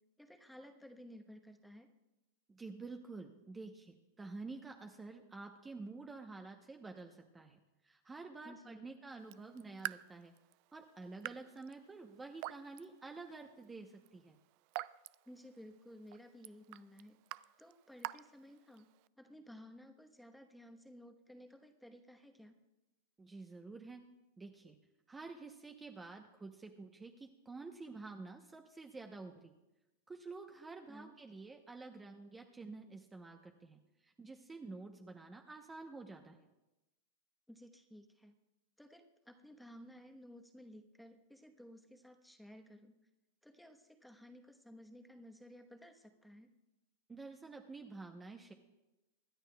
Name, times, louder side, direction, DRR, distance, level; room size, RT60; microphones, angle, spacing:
voice 1, 0.2-1.9 8.4-8.9 15.3-17.2 17.6-18.9 19.2-22.6 30.9-31.1 37.5-38.3 38.8-42.9 43.4-46.5, equal, ahead, 5 dB, 1.1 m, -56 dB
voice 2, 2.5-10.3 10.7-14.4 23.2-24.0 24.4-24.8 25.1-29.5 30.1-36.4 47.1-48.5, right 3 dB, 15° right, 4 dB, 0.8 m, -49 dB
Raindrop / Drip, 9.2-19.1, right 18 dB, 55° right, 0.3 m, -49 dB
25.5 x 10.5 x 2.3 m, 1.0 s
hypercardioid pair, 120°, 0 cm